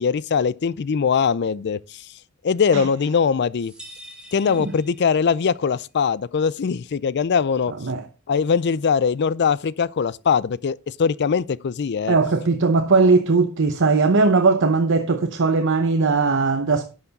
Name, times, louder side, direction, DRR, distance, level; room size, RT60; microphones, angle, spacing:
voice 1, 0.0-2.0 2.4-3.7 4.3-7.7 8.3-12.2, left 6 dB, 50° left, 0.4 m, -21 dB
sound 1, 3.6-5.5, equal, 5° right, 2.3 m, -45 dB
voice 2, 12.1-16.8, right 3 dB, 60° right, 0.8 m, -19 dB
11.0 x 6.9 x 4.0 m
head